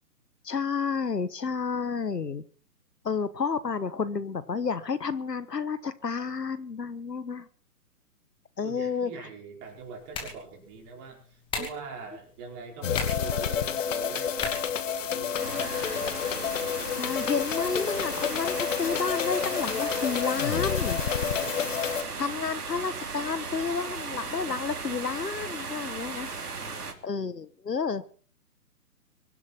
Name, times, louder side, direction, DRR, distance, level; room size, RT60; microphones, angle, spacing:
voice 1, 0.4-2.4 3.0-7.5 8.6-9.1 11.6-11.7 15.5-16.0 17.0-21.0 22.2-26.3 27.0-28.0, left 5 dB, 80° left, 15 dB, 1.4 m, -31 dB
voice 2, 8.6-14.6 15.1-16.2 21.0-21.9 26.5-27.0, right 5 dB, 25° right, 1 dB, 4.9 m, -43 dB
sound 1, 9.6-15.6, left 4 dB, 10° left, 2.6 m, -41 dB
sound 2, 12.8-22.0, left 8 dB, 50° left, 1.7 m, -29 dB
sound 3, 15.4-26.9, right 4 dB, 70° right, 3.1 m, -37 dB
24.0 x 11.5 x 4.5 m, 0.43 s
figure-of-eight pair, 135°, 48 cm